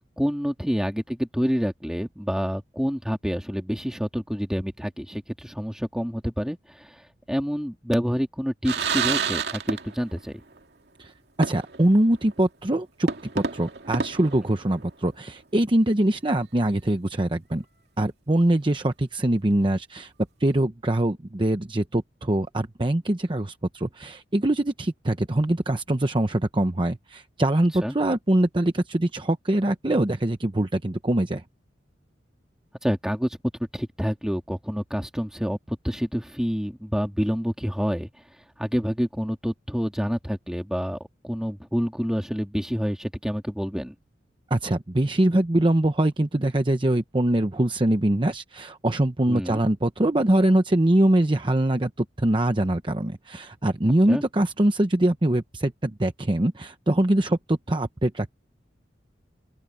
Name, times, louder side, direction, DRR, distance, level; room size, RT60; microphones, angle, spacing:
voice 1, 0.2-10.4 27.8-28.0 32.8-33.4 33.7-38.1 38.6-41.0 41.2-43.9 49.3-49.6 54.0-54.2, equal, 5° right, 2.7 m, -28 dB
sound 1, 8.6-10.2 10.5-10.6 11.4-11.9 12.3-12.4 13.1-15.1, right 5 dB, 65° right, 2.5 m, -29 dB
voice 2, 11.4-13.1 13.3-17.6 18.0-20.1 20.4-31.4 44.5-58.3, right 1 dB, 30° right, 0.9 m, -23 dB
open air
head